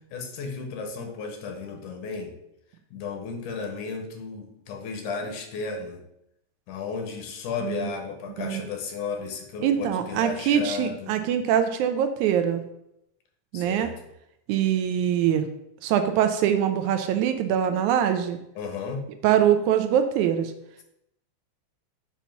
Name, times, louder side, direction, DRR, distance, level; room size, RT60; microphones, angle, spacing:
voice 1, 0.1-2.3 2.9-6.0 6.7-11.2 13.5-13.9 18.6-19.0, left 5 dB, 75° left, 3 dB, 2.3 m, -34 dB
voice 2, 9.6-12.6 13.5-13.9 14.5-15.4 15.8-18.4 19.2-20.5, right 9 dB, 80° right, 8 dB, 1.9 m, -23 dB
7.2 x 2.7 x 5.7 m, 0.80 s
omnidirectional pair, 3.5 m